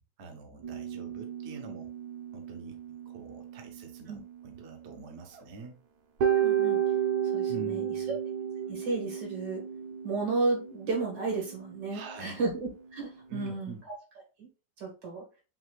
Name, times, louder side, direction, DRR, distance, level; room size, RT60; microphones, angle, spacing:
voice 1, 0.2-1.9 2.3-5.8 7.5-8.2 11.9-12.4 13.3-13.9, right 4 dB, 45° right, 2 dB, 1.0 m, -45 dB
sound 1, 0.6-5.0 5.4-5.5 6.2-13.5, right 9 dB, 65° right, 1.3 m, -33 dB
voice 2, 6.3-6.8 7.3-7.9 8.6-9.6 10.0-13.8 14.4-14.5 14.8-15.2, right 3 dB, 85° right, -1 dB, 2.7 m, -33 dB
5.7 x 2.7 x 3.2 m, 0.32 s
omnidirectional pair, 1.9 m